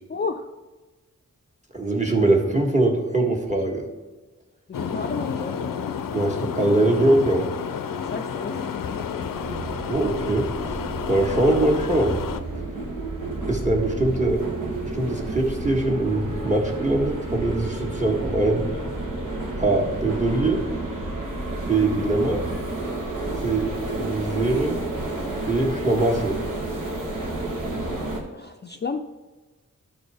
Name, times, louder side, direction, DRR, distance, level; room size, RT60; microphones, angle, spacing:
voice 1, 0.1-0.5 4.7-5.9 8.0-9.3 11.3-11.6 28.3-29.0, left 4 dB, 35° left, 4 dB, 0.4 m, -33 dB
voice 2, 1.7-3.9 6.1-7.4 9.9-10.5 11.1-12.2 13.5-14.4 14.8-18.7 19.6-20.6 21.7-22.4 23.4-23.7 24.0-24.8 25.5-26.4, right 2 dB, 20° right, 1 dB, 1.4 m, -22 dB
sound 1, 4.7-12.4, left 7 dB, 90° left, 0.5 m, -30 dB
sound 2, 9.3-28.2, right 2 dB, 80° right, 1.4 m, -31 dB
12.0 x 4.3 x 3.4 m, 1.2 s
wide cardioid pair, 90°, 32 cm